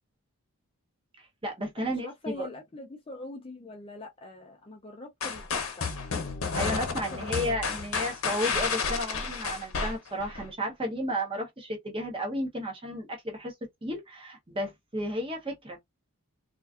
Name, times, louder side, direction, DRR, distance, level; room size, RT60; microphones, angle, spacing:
voice 1, 1.2-2.5 6.5-13.5 13.8-15.8, equal, 25° right, 0.8 m, -33 dB
voice 2, 1.8-5.9 6.9-7.6, left 2 dB, 25° left, 0.4 m, -43 dB
sound 1, 5.2-10.5, left 5 dB, 65° left, 0.7 m, -31 dB
2.4 x 2.3 x 2.3 m
head